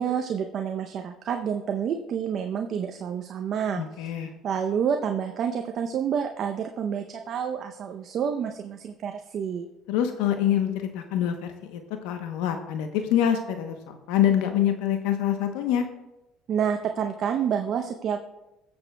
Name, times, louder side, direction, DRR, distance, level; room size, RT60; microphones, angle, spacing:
voice 1, 0.0-9.7 16.5-18.2, right 7 dB, 55° right, 5 dB, 0.6 m, -29 dB
voice 2, 3.8-4.3 9.9-15.9, left 10 dB, 85° left, 6 dB, 0.8 m, -25 dB
20.0 x 7.0 x 2.2 m, 0.98 s
supercardioid pair, 90°, 0 cm